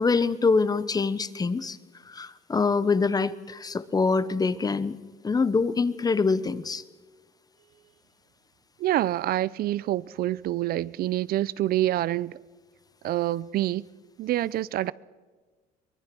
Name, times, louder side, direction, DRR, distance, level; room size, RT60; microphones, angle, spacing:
voice 1, 0.0-1.8 2.1-5.0 5.2-6.8, left 4 dB, 20° left, 1.0 m, -25 dB
voice 2, 8.8-12.4 13.0-13.9 14.2-14.9, right 14 dB, 65° right, 0.5 m, -26 dB
23.5 x 20.5 x 6.1 m
cardioid pair, 110°, 17 cm